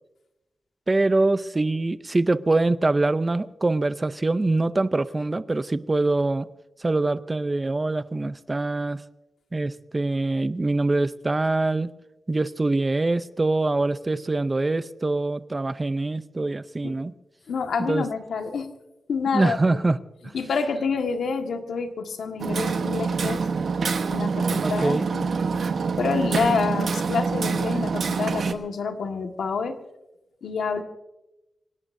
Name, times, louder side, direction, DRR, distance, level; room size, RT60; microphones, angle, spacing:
voice 1, 0.9-6.5 6.8-9.0 9.5-11.9 12.3-17.1 17.9-18.0 19.3-20.0 24.6-25.1 26.5-26.6, right 2 dB, 20° right, 0.5 m, -24 dB
voice 2, 17.5-18.7 19.1-19.8 20.3-23.4 24.1-25.3 26.0-29.8 30.4-30.8, left 5 dB, 85° left, 1.6 m, -28 dB
Hammer, 22.4-28.5, right 5 dB, 60° right, 1.2 m, -26 dB
27.0 x 17.5 x 2.7 m
wide cardioid pair, 145°, 0 cm